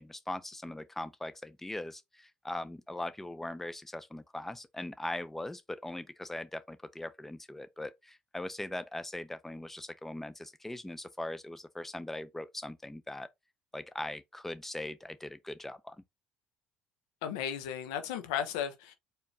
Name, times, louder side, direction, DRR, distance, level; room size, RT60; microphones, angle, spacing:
voice 1, 0.0-13.3 13.7-16.0, left 1 dB, 10° left, 0.7 m, -40 dB
voice 2, 17.2-18.9, left 9 dB, 85° left, 0.9 m, -35 dB
4.4 x 3.4 x 2.9 m
supercardioid pair, 80°, 3 cm